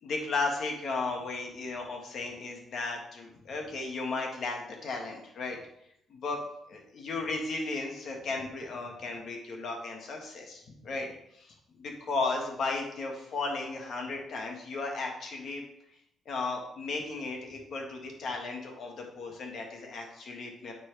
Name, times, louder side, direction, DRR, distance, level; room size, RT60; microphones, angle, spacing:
voice 1, 0.0-5.6 6.1-6.4 6.7-11.1 11.3-11.5 11.8-15.6 16.2-20.7, left 3 dB, 60° left, 1 dB, 1.7 m, -35 dB
9.0 x 4.2 x 3.4 m, 0.74 s
cardioid pair, 90°, 0 cm